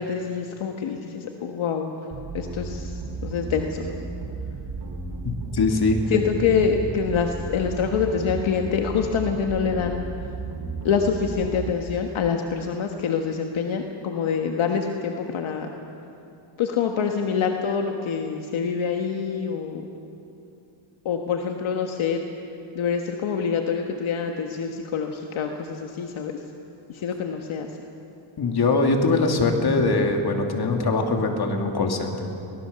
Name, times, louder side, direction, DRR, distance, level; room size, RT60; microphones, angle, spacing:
voice 1, 0.0-1.9 2.3-2.9 3.2-3.9 6.1-10.0 10.8-15.7 16.6-19.8 21.0-22.2 22.7-26.3 26.9-27.7, left 6 dB, 75° left, 3 dB, 1.5 m, -26 dB
sound 1, 2.1-11.7, right 4 dB, 55° right, 3.6 m, -34 dB
voice 2, 5.2-6.0 28.4-32.1, left 3 dB, 50° left, 3 dB, 2.8 m, -22 dB
24.0 x 18.5 x 6.9 m, 2.8 s
cardioid pair, 95°, 48 cm